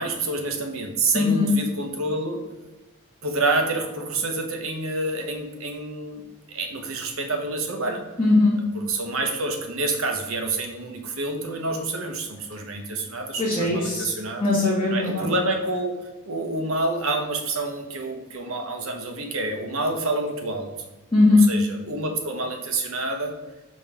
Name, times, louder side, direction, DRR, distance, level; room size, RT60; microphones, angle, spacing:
voice 1, 0.0-2.4 3.2-6.2 6.5-8.0 8.7-14.4 14.9-16.0 16.2-20.7 21.5-23.3, right 2 dB, 65° right, 4 dB, 1.0 m, -28 dB
voice 2, 1.1-1.5 8.2-8.6 13.4-14.1 14.4-15.3 21.1-21.5, left 2 dB, 25° left, -7 dB, 1.5 m, -19 dB
5.3 x 3.7 x 5.6 m, 1.1 s
head